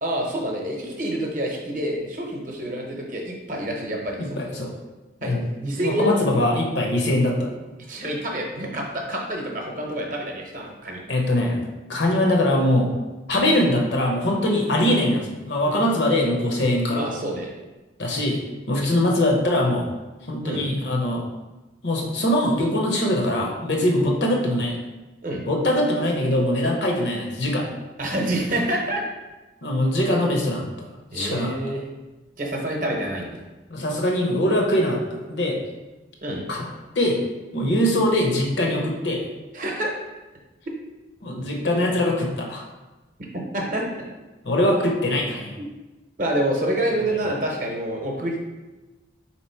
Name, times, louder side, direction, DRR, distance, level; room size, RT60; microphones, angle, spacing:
voice 1, 0.0-4.4 5.2-5.3 5.6-6.1 7.9-11.0 16.9-17.5 20.4-20.7 25.2-25.4 28.0-29.0 31.1-31.8 32.4-33.4 36.2-36.4 39.5-39.9 43.5-43.8 45.6-45.7 46.2-48.4, right 1 dB, 45° right, 0 dB, 0.7 m, -27 dB
voice 2, 4.2-4.7 5.2-5.4 5.8-7.5 11.1-11.6 11.9-12.9 13.3-17.0 18.0-18.4 18.7-19.9 20.3-21.2 21.8-24.8 25.5-27.7 29.6-30.9 31.1-31.6 33.7-35.0 35.3-35.6 36.5-36.6 36.9-37.2 37.5-39.2 41.2-42.6 44.4-45.6, left 1 dB, 70° left, 0 dB, 0.8 m, -22 dB
3.7 x 3.0 x 4.3 m, 1.1 s
head